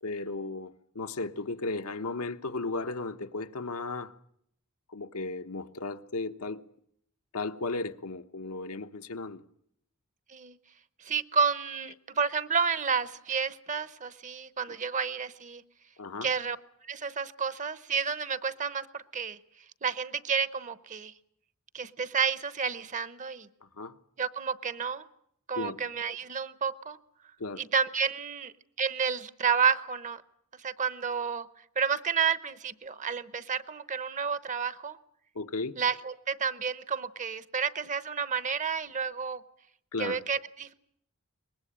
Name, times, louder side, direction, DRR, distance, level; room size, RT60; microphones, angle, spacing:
voice 1, 0.0-4.1 4.9-6.6 7.3-9.4 14.7-14.8 16.0-16.3 23.6-23.9 25.6-25.8 27.4-27.6 35.3-35.8 39.9-40.2, left 3 dB, 80° left, 1.2 m, -35 dB
voice 2, 11.0-15.6 16.2-16.6 16.8-19.4 19.8-21.1 21.7-23.5 24.2-25.0 25.5-27.0 27.6-28.5 28.8-30.2 30.6-31.5 31.8-35.0 35.8-39.4 40.0-40.7, right 6 dB, 35° right, 0.9 m, -30 dB
23.5 x 20.0 x 8.7 m
head